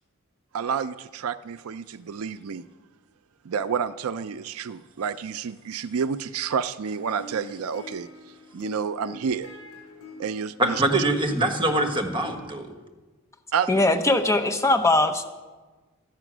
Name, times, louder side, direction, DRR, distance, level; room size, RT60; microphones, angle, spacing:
voice 1, 0.5-2.7 3.4-8.1 8.5-9.5 10.2-10.8 13.5-13.7, right 6 dB, 75° right, 13 dB, 0.4 m, -29 dB
sound 1, 7.1-12.4, left 1 dB, 75° left, 5.1 m, -44 dB
voice 2, 10.6-12.7, right 1 dB, 25° right, 4 dB, 1.5 m, -24 dB
voice 3, 13.7-15.2, left 2 dB, 15° left, 6 dB, 0.8 m, -20 dB
13.0 x 10.0 x 6.1 m, 1.3 s
head